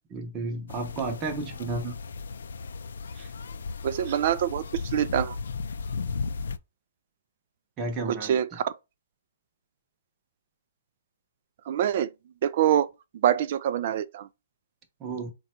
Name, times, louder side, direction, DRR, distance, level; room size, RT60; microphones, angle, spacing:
voice 1, 0.1-2.0 3.1-3.3 7.8-8.4 15.0-15.3, right 3 dB, 20° right, 0.8 m, -32 dB
sound 1, 0.7-6.6, left 4 dB, 80° left, 0.4 m, -35 dB
voice 2, 3.8-5.4 8.1-8.7 11.7-12.1 12.4-12.9 13.1-14.3, right 10 dB, 45° right, 0.4 m, -25 dB
3.9 x 2.3 x 4.3 m
hypercardioid pair, 160°, 0 cm